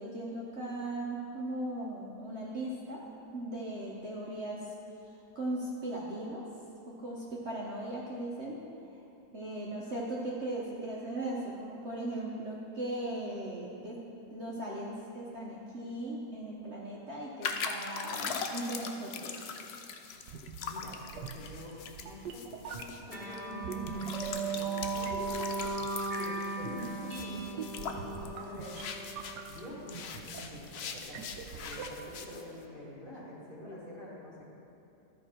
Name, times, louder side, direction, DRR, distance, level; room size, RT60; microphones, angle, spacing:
voice 1, 0.0-3.1 3.3-4.6 5.3-6.4 6.9-8.6 9.3-14.0 14.3-19.5 33.6-33.8, right 1 dB, 50° right, -5 dB, 1.1 m, -38 dB
sound 1, 17.4-29.6 29.9-32.4, left 6 dB, 75° left, 0.5 m, -41 dB
sound 2, 20.2-32.3, right 6 dB, 85° right, 1.2 m, -46 dB
voice 2, 20.7-25.1 26.1-28.8 29.5-34.5, left 1 dB, 30° left, -7 dB, 2.0 m, -47 dB
sound 3, 23.1-30.0, right 3 dB, 20° right, 1.8 m, -37 dB
13.0 x 5.4 x 4.3 m, 2.9 s
omnidirectional pair, 1.8 m